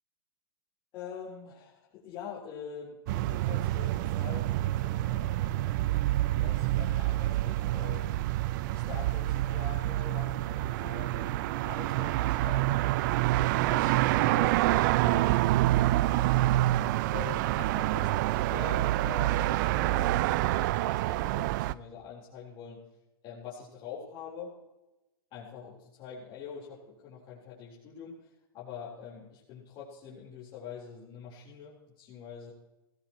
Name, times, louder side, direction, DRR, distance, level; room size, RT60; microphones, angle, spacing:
voice 1, 0.9-5.6 6.4-8.2 8.7-12.7 13.0-15.4 15.9-16.5 17.1-22.8 23.2-24.5 25.3-28.2 28.5-32.5, left 7 dB, 40° left, -7 dB, 4.0 m, -45 dB
sound 1, 3.1-21.7, right 16 dB, 55° right, 0.4 m, -27 dB
sound 2, 4.4-17.0, right 3 dB, 85° right, 5.9 m, -58 dB
17.5 x 14.5 x 3.1 m, 1.0 s
hypercardioid pair, 125°, 13 cm